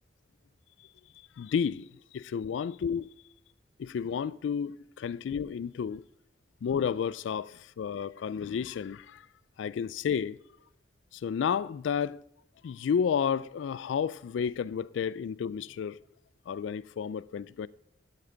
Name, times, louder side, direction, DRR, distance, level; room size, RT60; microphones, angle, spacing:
voice 1, 1.4-1.9 2.1-3.1 3.8-6.0 6.6-9.3 9.6-10.4 11.1-12.2 12.6-16.0 16.5-17.7, left 7 dB, 85° left, 0.3 m, -31 dB
12.5 x 8.5 x 3.9 m
head